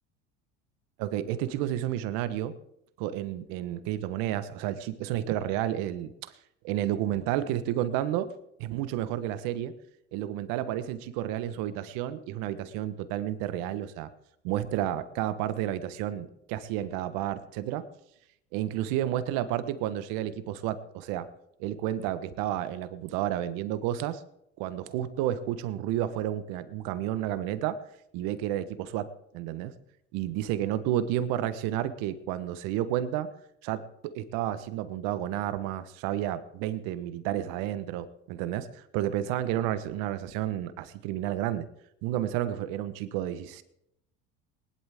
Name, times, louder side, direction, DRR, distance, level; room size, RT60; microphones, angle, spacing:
voice 1, 1.0-2.6 3.0-6.3 6.6-8.3 8.6-9.7 10.1-14.1 14.4-17.9 18.5-21.3 21.6-24.2 24.6-27.8 28.1-29.7 30.1-33.3 33.6-41.7 42.0-43.6, right 12 dB, 65° right, 13 dB, 1.2 m, -31 dB
20.5 x 11.5 x 3.6 m, 0.77 s
hypercardioid pair, 85°, 37 cm